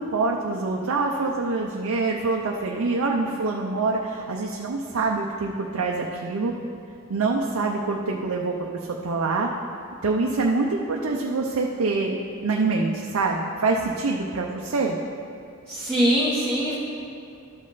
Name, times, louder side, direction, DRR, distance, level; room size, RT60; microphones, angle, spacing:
voice 1, 0.0-6.5 7.1-8.6 8.9-9.5 10.0-15.0, right 3 dB, 75° right, 0 dB, 0.6 m, -25 dB
voice 2, 15.7-16.8, equal, 5° left, -8 dB, 1.0 m, -22 dB
12.5 x 5.3 x 3.9 m, 2.5 s
head